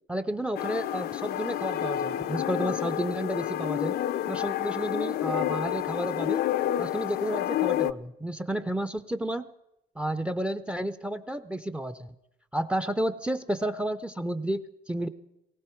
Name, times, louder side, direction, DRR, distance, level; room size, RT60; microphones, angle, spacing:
voice 1, 0.1-4.0 4.3-6.4 6.8-9.4 10.0-12.1 12.5-15.1, right 1 dB, 5° right, 12 dB, 0.6 m, -31 dB
sound 1, 0.5-7.9, left 12 dB, 65° left, 0.5 m, -29 dB
18.5 x 16.5 x 4.5 m, 0.87 s
cardioid pair, 110°, 17 cm